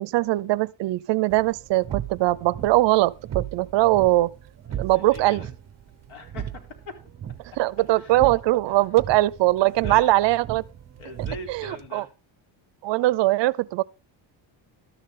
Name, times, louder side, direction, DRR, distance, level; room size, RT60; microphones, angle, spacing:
voice 1, 0.0-4.3 4.8-5.4 7.6-10.6 11.5-12.0 12.8-13.8, right 17 dB, 65° right, 0.6 m, -21 dB
sound 1, 1.3-11.9, right 10 dB, 35° right, 0.9 m, -37 dB
voice 2, 4.7-5.5 6.1-6.9 7.9-8.3 8.7-8.8 9.6-10.2 11.0-12.1, left 3 dB, 85° left, 3.8 m, -42 dB
13.0 x 11.0 x 3.7 m
cardioid pair, 165°, 47 cm